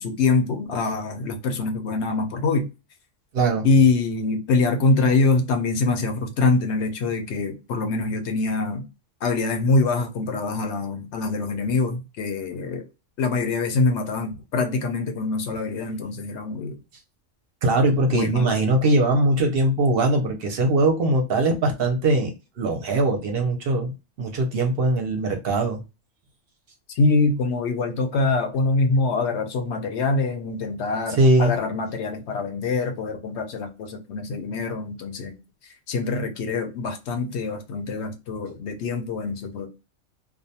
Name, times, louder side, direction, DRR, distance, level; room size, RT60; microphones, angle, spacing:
voice 1, 0.0-2.7 3.6-8.9 9.2-12.8 13.2-16.8 18.1-18.5 27.0-39.7, left 3 dB, 70° left, 0.8 m, -24 dB
voice 2, 3.3-3.7 17.6-23.9 24.2-25.8 31.2-31.5, right 2 dB, 60° right, 0.7 m, -21 dB
2.4 x 2.1 x 2.7 m
omnidirectional pair, 1.2 m